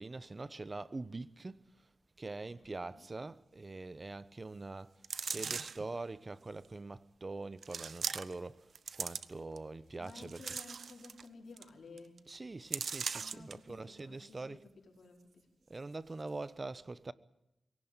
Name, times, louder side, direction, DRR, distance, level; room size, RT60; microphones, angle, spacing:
voice 1, 0.0-1.6 2.2-4.9 5.2-8.7 9.0-10.5 12.3-14.6 15.7-17.1, right 3 dB, 35° right, 1.1 m, -43 dB
voice 2, 2.4-3.1 10.0-12.3 13.2-15.5, left 3 dB, 80° left, 4.9 m, -55 dB
sound 1, 5.0-5.9 6.6-6.7 7.6-8.5 8.7-9.6 10.1-11.2 11.6-11.7 12.0-12.2 12.7-13.5 14.0-14.1, right 6 dB, 75° right, 0.9 m, -39 dB
23.0 x 17.5 x 9.1 m
cardioid pair, 70°, 0 cm